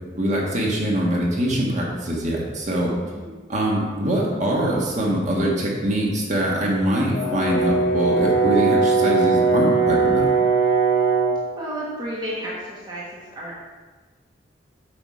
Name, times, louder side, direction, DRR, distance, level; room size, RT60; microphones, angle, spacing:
voice 1, 0.1-2.9 3.5-10.3, right 1 dB, 40° right, -3 dB, 1.6 m, -23 dB
voice 2, 3.0-3.3 11.5-13.6, right 1 dB, 25° right, -6 dB, 1.3 m, -32 dB
Brass instrument, 7.1-11.4, right 4 dB, 45° left, 2.5 m, -19 dB
8.1 x 5.0 x 4.8 m, 1.4 s
head